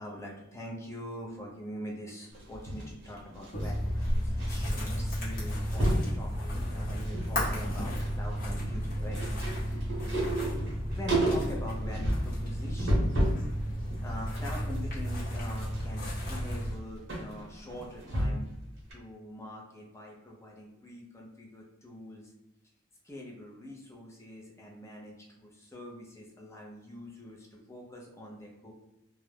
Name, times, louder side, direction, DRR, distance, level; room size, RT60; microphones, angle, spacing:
voice 1, 0.0-10.1 10.9-13.2 14.0-18.5 18.9-22.3 23.0-28.7, left 1 dB, 15° left, -2 dB, 0.5 m, -44 dB
sound 1, 2.3-4.5 4.8-5.0 5.3-6.1 6.7-7.3 7.6-13.5 13.9-18.6 18.9-19.0, right 1 dB, 60° right, 0.8 m, -32 dB
sound 2, 3.5-16.7, equal, 45° left, 0.9 m, -33 dB
2.3 x 2.0 x 3.2 m, 0.94 s
head